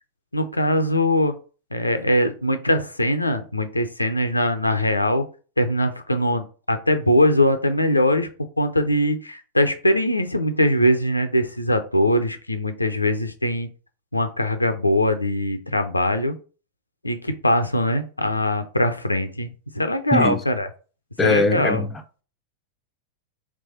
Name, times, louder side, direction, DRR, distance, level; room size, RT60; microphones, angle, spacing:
voice 1, 0.3-1.3 1.7-5.2 5.6-8.3 8.6-13.7 14.1-16.4 17.0-20.7 21.2-21.8, left 1 dB, 85° left, 0.5 m, -21 dB
voice 2, 20.1-20.4 21.2-22.2, left 3 dB, 15° left, 0.6 m, -22 dB
3.4 x 3.3 x 3.9 m
figure-of-eight pair, 90°, 0 cm